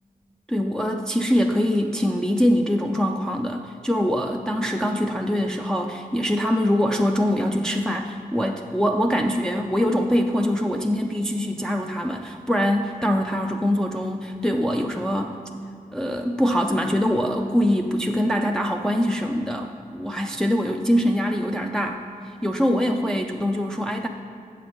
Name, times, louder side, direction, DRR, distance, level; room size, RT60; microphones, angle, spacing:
voice 1, 0.5-15.4 15.9-22.0 22.4-24.1, equal, 5° left, 2 dB, 0.4 m, -23 dB
7.8 x 7.2 x 4.9 m, 2.5 s
wide cardioid pair, 85°, 15 cm